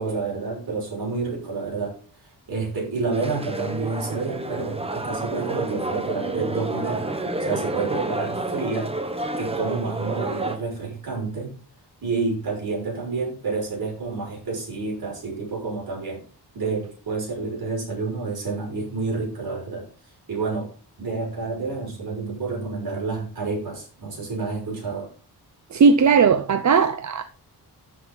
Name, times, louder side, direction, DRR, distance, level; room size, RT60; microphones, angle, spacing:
voice 1, 0.0-1.9 2.2-7.1 7.4-8.9 9.4-11.5 12.0-16.2 16.5-19.9 20.3-20.7 21.0-25.1, right 4 dB, 60° right, 6.0 m, -29 dB
sound 1, 3.1-10.6, right 2 dB, 15° right, 1.0 m, -29 dB
voice 2, 25.7-27.2, right 5 dB, 45° right, 0.6 m, -17 dB
13.0 x 6.2 x 3.9 m
wide cardioid pair, 145°, 41 cm